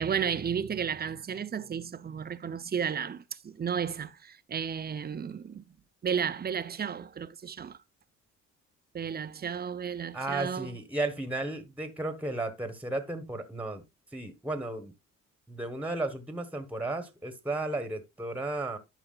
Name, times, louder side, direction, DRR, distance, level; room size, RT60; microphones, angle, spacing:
voice 1, 0.0-5.6 6.0-7.8 8.9-10.7, right 7 dB, 30° right, 0.6 m, -33 dB
voice 2, 10.1-13.8 14.1-14.9 15.5-18.8, right 2 dB, 5° right, 1.2 m, -34 dB
11.5 x 4.9 x 2.4 m
cardioid pair, 90°, 30 cm